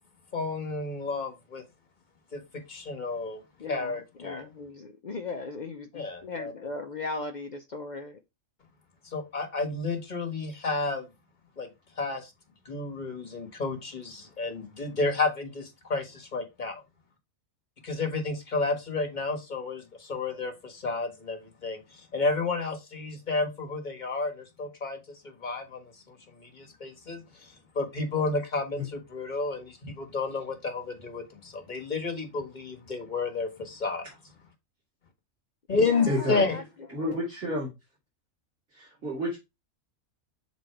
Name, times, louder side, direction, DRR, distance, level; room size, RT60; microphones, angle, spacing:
voice 1, 0.3-1.6 2.3-2.4 2.7-3.4 3.7-4.5 5.9-6.5 9.0-11.1 11.6-11.7 12.0-12.3 12.6-16.8 17.8-25.0 25.2-34.1 35.7-36.6, left 3 dB, 35° left, 1.5 m, -31 dB
voice 2, 3.6-8.2 35.7-36.6 36.9-37.2, left 3 dB, 55° left, 0.5 m, -38 dB
voice 3, 36.1-36.5 36.9-37.7 38.7-39.4, left 1 dB, 55° right, 3.0 m, -30 dB
6.2 x 4.1 x 4.4 m
omnidirectional pair, 1.5 m